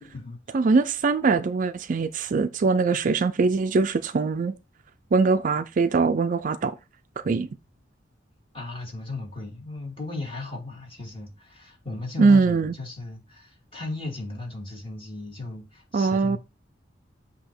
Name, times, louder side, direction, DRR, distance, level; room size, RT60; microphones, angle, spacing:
voice 1, 0.0-0.4 8.5-16.4, left 2 dB, 30° left, 2.3 m, -36 dB
voice 2, 0.5-4.6 5.1-6.8 7.2-7.5 12.2-12.7 15.9-16.4, right 4 dB, 45° right, 0.4 m, -22 dB
7.9 x 2.8 x 4.3 m
head